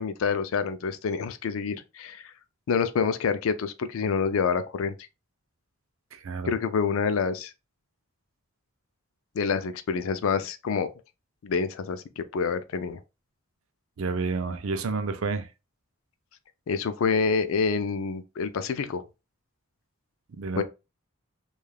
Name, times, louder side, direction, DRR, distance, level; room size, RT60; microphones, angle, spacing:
voice 1, 0.0-2.3 2.7-4.9 6.4-7.5 9.4-10.9 11.4-13.0 16.7-19.0 20.6-20.7, left 5 dB, 70° left, 0.4 m, -27 dB
voice 2, 6.1-6.5 14.0-15.5 20.4-20.6, right 4 dB, 70° right, 0.4 m, -30 dB
3.2 x 2.3 x 2.3 m
head